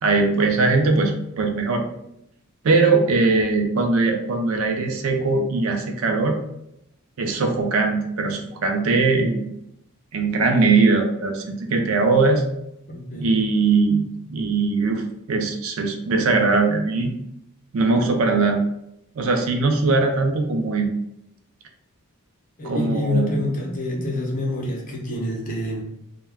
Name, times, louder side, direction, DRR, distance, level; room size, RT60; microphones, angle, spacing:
voice 1, 0.0-1.8 2.6-6.4 7.2-9.5 10.1-11.4 11.7-12.4 13.2-17.1 17.7-18.6 19.2-20.9 22.6-23.4, right 3 dB, 65° right, 4 dB, 0.4 m, -20 dB
voice 2, 12.9-13.4 22.6-25.8, left 2 dB, 40° left, -1 dB, 0.6 m, -27 dB
2.2 x 2.1 x 3.4 m, 0.79 s
head